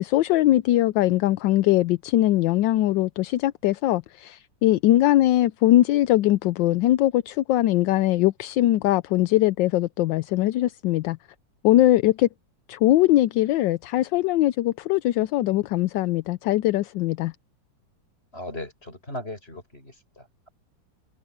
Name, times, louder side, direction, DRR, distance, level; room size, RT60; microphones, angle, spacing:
voice 1, 0.0-11.2 11.6-12.3 12.7-17.3, left 15 dB, 80° left, 1.3 m, -21 dB
voice 2, 18.3-20.5, left 1 dB, 30° left, 8.0 m, -38 dB
omnidirectional pair, 2.0 m